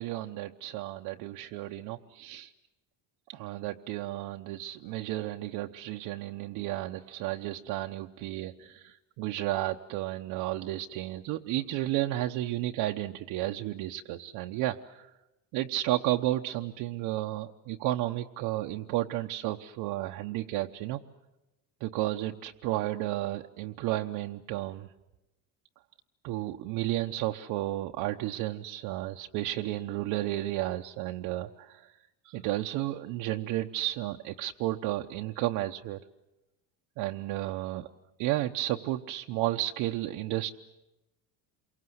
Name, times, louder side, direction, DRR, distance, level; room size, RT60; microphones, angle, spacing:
voice 1, 0.0-2.5 3.3-15.1 15.5-21.0 21.8-24.9 26.2-31.9 32.2-36.0 37.0-37.9 38.2-40.6, right 15 dB, 65° right, 3 dB, 0.9 m, -32 dB
28.5 x 23.5 x 7.9 m, 0.99 s
cardioid pair, 170°, 39 cm